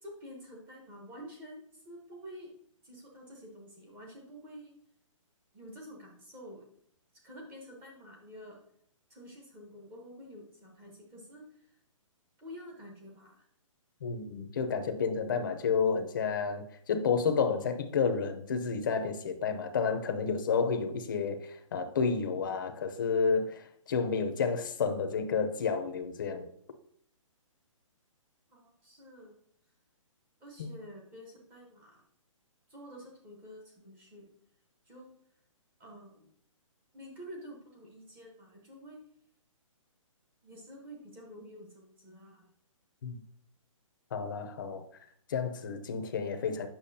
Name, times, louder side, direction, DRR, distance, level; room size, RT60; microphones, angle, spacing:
voice 1, 0.0-2.5 2.8-4.7 5.5-6.7 7.2-8.6 9.1-11.8 12.4-13.5 28.5-29.4 30.4-32.0 32.7-34.3 34.9-35.1 35.8-36.3 36.9-39.0 40.4-42.5, equal, 10° right, 1.0 m, -49 dB
voice 2, 14.0-26.5 30.6-30.7 43.0-43.2 44.1-44.9 45.3-46.7, left 5 dB, 35° left, 0.7 m, -30 dB
8.4 x 6.0 x 2.7 m
hypercardioid pair, 170°, 17 cm